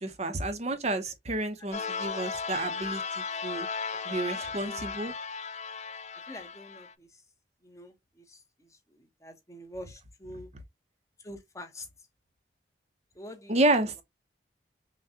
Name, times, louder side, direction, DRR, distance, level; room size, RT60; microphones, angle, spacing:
voice 1, 0.0-3.7 4.1-5.1 13.5-14.0, right 2 dB, 40° right, 0.8 m, -30 dB
sound 1, 1.7-6.9, left 5 dB, 40° left, 0.4 m, -36 dB
voice 2, 3.9-4.9 6.3-7.1 7.6-10.5 11.2-11.9 13.2-13.5, left 1 dB, 15° left, 1.0 m, -46 dB
5.8 x 2.3 x 2.7 m
head